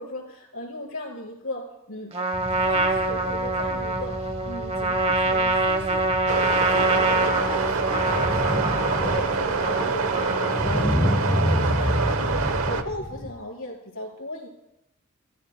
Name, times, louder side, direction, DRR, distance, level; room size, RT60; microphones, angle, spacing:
voice 1, 0.0-2.1 2.5-6.0 6.7-14.5, left 1 dB, 70° left, -2 dB, 4.5 m, -36 dB
Trumpet, 2.1-10.8, right 2 dB, 30° right, 1.1 m, -25 dB
sound 1, 2.3-13.3, equal, 10° left, 1.9 m, -29 dB
sound 2, 6.3-12.8, right 4 dB, 85° right, 1.0 m, -26 dB
29.5 x 14.5 x 2.2 m, 0.87 s
head